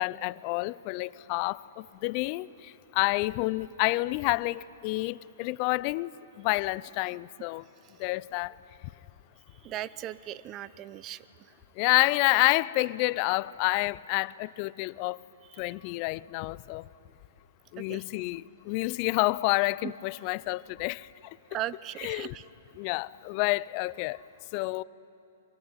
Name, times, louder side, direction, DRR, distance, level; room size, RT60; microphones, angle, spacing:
voice 1, 0.0-2.5 2.9-6.1 6.4-7.6 8.0-8.5 11.8-15.2 15.6-16.8 17.7-21.1 22.0-22.3 22.8-24.2 24.5-24.8, left 22 dB, 40° left, 0.5 m, -28 dB
voice 2, 9.6-11.2 15.6-15.7 17.8-18.0 19.8-19.9 21.5-22.4, right 13 dB, 30° right, 0.7 m, -37 dB
23.5 x 23.0 x 9.6 m
hypercardioid pair, 120°, 0 cm